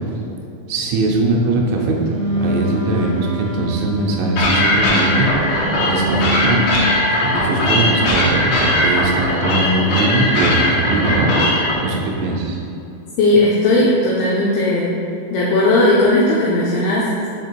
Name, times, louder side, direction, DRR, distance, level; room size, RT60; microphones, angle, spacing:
voice 1, 0.7-6.8 7.2-12.6, right 2 dB, 85° right, -1 dB, 3.2 m, -20 dB
Wind instrument woodwind instrument, 2.1-6.8, equal, 70° right, 2.1 m, -25 dB
sound 1, 4.4-11.8, left 1 dB, 75° left, 2.3 m, -19 dB
voice 2, 13.2-14.9 15.3-17.3, left 2 dB, 90° left, -5 dB, 2.2 m, -16 dB
7.2 x 2.9 x 4.5 m, 2.7 s
omnidirectional pair, 5.3 m